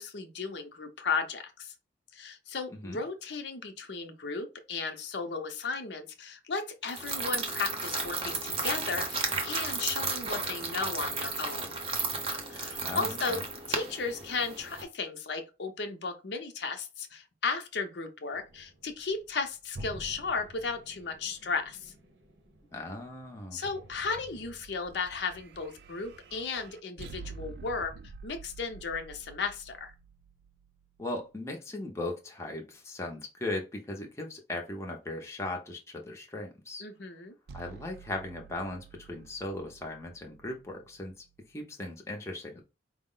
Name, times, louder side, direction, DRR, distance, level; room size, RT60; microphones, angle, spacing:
voice 1, 0.0-1.7 2.1-11.7 12.5-13.4 13.7-21.9 23.5-27.9 28.2-29.9 36.8-37.3, left 4 dB, 65° left, 0.7 m, -35 dB
sound 1, 6.9-14.8, right 4 dB, 30° right, 0.7 m, -33 dB
voice 2, 12.8-13.4 22.7-23.6 31.0-36.8 37.5-42.6, left 2 dB, 15° left, 0.6 m, -38 dB
sound 2, 18.3-24.6, right 1 dB, 80° right, 0.8 m, -50 dB
sound 3, 23.9-31.2 37.5-41.6, right 4 dB, 60° right, 0.3 m, -50 dB
4.6 x 2.0 x 3.7 m
head